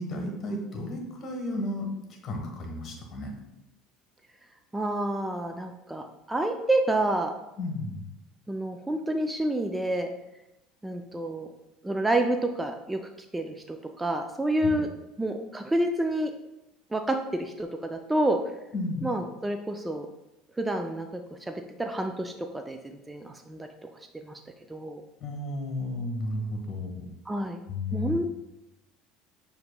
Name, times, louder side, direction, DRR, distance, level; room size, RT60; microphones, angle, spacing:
voice 1, 0.0-3.3 7.6-8.0 14.6-14.7 18.7-19.1 25.2-27.1 27.7-28.1, left 2 dB, 45° left, 2 dB, 1.2 m, -33 dB
voice 2, 4.7-7.3 8.5-10.1 10.8-11.5 11.8-13.0 13.3-14.9 15.2-16.3 16.9-18.4 19.0-20.1 20.6-23.7 24.2-24.4 24.7-25.0 27.3-27.6 27.9-28.2, right 1 dB, 10° right, 5 dB, 0.3 m, -29 dB
6.6 x 2.9 x 2.2 m, 0.92 s
hypercardioid pair, 85°, 0 cm